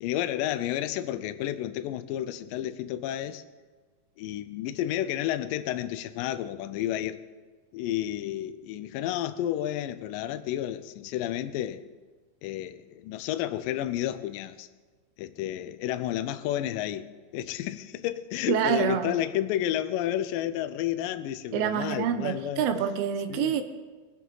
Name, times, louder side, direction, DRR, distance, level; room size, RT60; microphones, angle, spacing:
voice 1, 0.0-3.4 4.2-7.2 7.7-11.8 12.4-14.7 15.2-17.1 17.3-22.8 23.3-23.5, left 12 dB, 80° left, 11 dB, 2.0 m, -31 dB
voice 2, 18.5-19.1 21.5-23.6, right 9 dB, 85° right, 9 dB, 2.6 m, -27 dB
21.5 x 9.3 x 3.9 m, 1.4 s
omnidirectional pair, 4.5 m